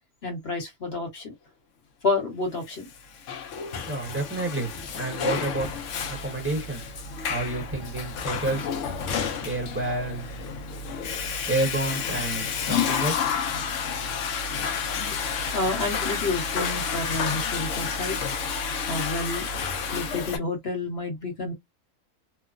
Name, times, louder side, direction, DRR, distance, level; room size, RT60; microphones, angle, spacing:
voice 1, 0.2-1.3 2.0-2.9 15.1-15.2 15.5-18.2 18.9-19.5 19.9-21.5, left 3 dB, 45° left, 1.2 m, -29 dB
Water / Toilet flush, 2.9-20.4, left 6 dB, 65° left, 0.9 m, -30 dB
voice 2, 3.9-5.7 6.1-6.8 7.3-8.7 9.4-10.3 11.5-13.3, right 2 dB, 10° right, 0.9 m, -29 dB
3.0 x 2.0 x 2.4 m
omnidirectional pair, 1.5 m